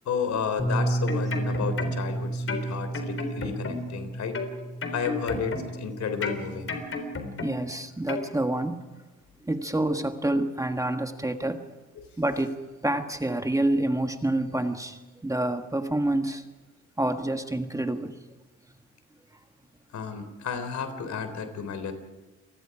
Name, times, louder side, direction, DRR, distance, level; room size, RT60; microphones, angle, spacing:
voice 1, 0.1-4.4 4.9-6.7 12.0-12.1 19.9-21.9, left 6 dB, 65° left, 9 dB, 3.6 m, -32 dB
Bass guitar, 0.6-6.8, right 2 dB, 15° left, 6.4 m, -32 dB
sound 1, 0.8-2.1 2.5-4.0 4.3-5.9 6.2-7.7 8.1-8.3, left 4 dB, 45° left, 3.8 m, -33 dB
voice 2, 7.4-8.8 9.4-11.7 12.2-12.6 12.8-16.4 17.0-18.2, right 1 dB, 10° right, 6 dB, 1.5 m, -27 dB
28.0 x 20.0 x 4.9 m, 1.2 s
cardioid pair, 90°, 30 cm